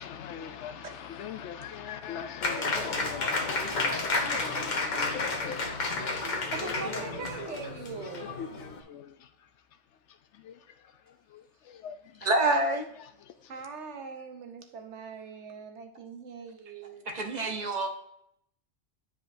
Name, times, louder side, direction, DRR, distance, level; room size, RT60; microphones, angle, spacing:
voice 1, 0.0-6.7 8.0-9.3 10.3-12.3 13.2-13.5, left 8 dB, 75° left, 0.9 m, -42 dB
Applause, 2.4-8.8, left 3 dB, 45° left, 0.9 m, -31 dB
voice 2, 6.5-8.4 13.5-17.1, right 5 dB, 75° right, 1.2 m, -41 dB
voice 3, 12.2-12.9 17.1-17.9, right 2 dB, 40° right, 0.9 m, -26 dB
10.0 x 5.0 x 2.6 m
omnidirectional pair, 1.2 m